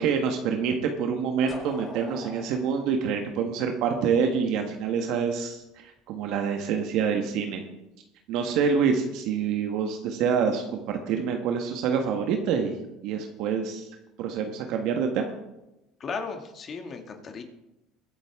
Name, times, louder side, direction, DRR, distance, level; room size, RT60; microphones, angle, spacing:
voice 1, 0.0-7.6 8.3-13.9 14.2-15.2, right 6 dB, 65° right, 4 dB, 1.5 m, -26 dB
sound 1, 1.5-4.3, equal, ahead, 5.7 m, -43 dB
voice 2, 16.0-17.4, left 5 dB, 40° left, 4 dB, 2.4 m, -35 dB
22.5 x 8.1 x 3.7 m, 0.93 s
supercardioid pair, 90°, 0 cm